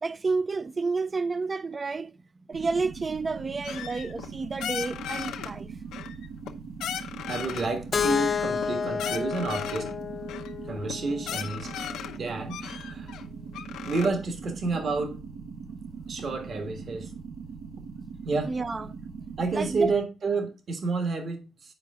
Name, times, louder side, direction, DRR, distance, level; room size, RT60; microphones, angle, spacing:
voice 1, 0.0-2.1 2.5-5.7 18.5-18.9 19.5-19.9, right 4 dB, 30° right, 0.5 m, -30 dB
sound 1, 2.5-20.0, right 5 dB, 80° right, 1.4 m, -41 dB
sound 2, 3.6-4.3 4.6-5.5 5.9-6.5 6.8-7.7 8.0-9.9 10.3-10.5 10.9-11.0 11.2-12.2 12.5-14.1, left 9 dB, 85° left, 0.7 m, -36 dB
voice 2, 7.3-9.9 10.7-11.7 12.2-13.1 13.8-15.2 16.1-17.1 18.2-18.5 19.4-21.5, right 3 dB, 50° right, 1.5 m, -29 dB
Keyboard (musical), 7.9-11.8, left 7 dB, 40° left, 0.6 m, -31 dB
8.9 x 4.7 x 3.6 m
cardioid pair, 90°, 0 cm